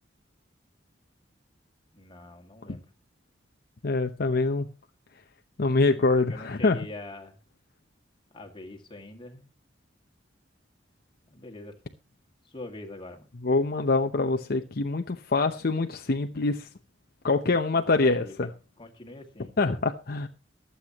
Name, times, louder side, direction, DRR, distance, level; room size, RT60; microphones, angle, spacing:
voice 1, 1.9-2.9 5.9-7.4 8.3-9.5 11.3-11.7 12.5-13.3 17.8-18.5 18.8-19.5, left 2 dB, 30° left, 2.2 m, -43 dB
voice 2, 3.8-4.7 5.6-6.8 13.4-16.7 17.2-18.5 19.6-20.3, left 3 dB, 55° left, 0.8 m, -25 dB
24.0 x 8.1 x 3.0 m
head